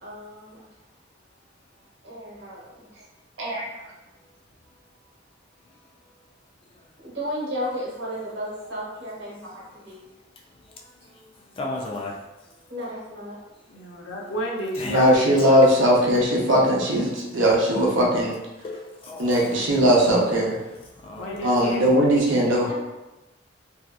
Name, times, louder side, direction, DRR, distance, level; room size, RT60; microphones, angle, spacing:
voice 1, 0.0-0.6 2.0-3.0 7.0-10.0 12.7-13.4 22.3-22.7, equal, 60° right, -7 dB, 1.1 m, -34 dB
voice 2, 11.6-12.2 14.8-15.0 18.6-19.9 20.7-20.8 21.0-21.6, left 2 dB, 30° left, -1 dB, 0.3 m, -34 dB
voice 3, 13.7-15.6 21.2-21.9, equal, 85° left, 0 dB, 0.5 m, -31 dB
voice 4, 14.9-18.3 19.2-20.6 21.4-22.6, equal, 80° right, -3 dB, 0.6 m, -19 dB
2.7 x 2.2 x 2.3 m, 1.0 s
head